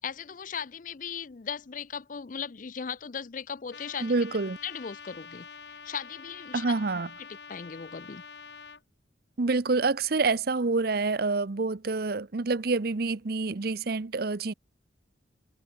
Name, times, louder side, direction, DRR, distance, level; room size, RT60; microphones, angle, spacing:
voice 1, 0.0-4.1 4.6-6.7 7.2-8.2, left 7 dB, 45° left, 0.5 m, -38 dB
Trumpet, 3.7-8.8, left 5 dB, 60° left, 2.6 m, -46 dB
voice 2, 4.0-4.6 6.5-7.1 9.4-14.5, right 3 dB, 55° right, 0.7 m, -27 dB
head